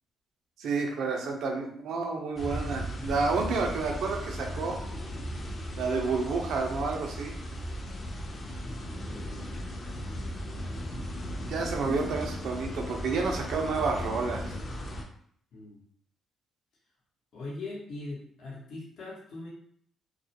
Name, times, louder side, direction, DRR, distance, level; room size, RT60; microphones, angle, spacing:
voice 1, 0.6-4.8 5.8-7.3 11.5-14.5, right 4 dB, 75° right, 2 dB, 0.5 m, -30 dB
sound 1, 2.4-15.0, equal, 40° left, 0.5 m, -37 dB
voice 2, 8.5-9.5 15.5-15.8 17.3-19.5, left 2 dB, 70° left, -5 dB, 0.8 m, -41 dB
2.3 x 2.1 x 2.8 m, 0.65 s
supercardioid pair, 65°, 0 cm